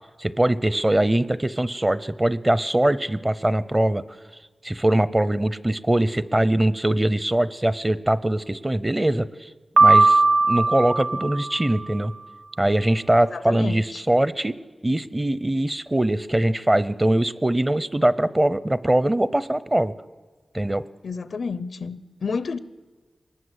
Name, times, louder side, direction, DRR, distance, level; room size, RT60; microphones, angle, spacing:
voice 1, 0.2-4.0 4.6-9.5 9.8-10.2 10.5-12.1 12.6-14.6 14.8-19.9 20.5-20.8, right 1 dB, 20° right, 0.7 m, -22 dB
Piano, 9.8-11.9, right 3 dB, 85° right, 1.2 m, -18 dB
voice 2, 13.3-13.8 21.0-22.6, left 4 dB, 85° left, 0.7 m, -30 dB
24.0 x 20.5 x 8.3 m
wide cardioid pair, 100°, 0 cm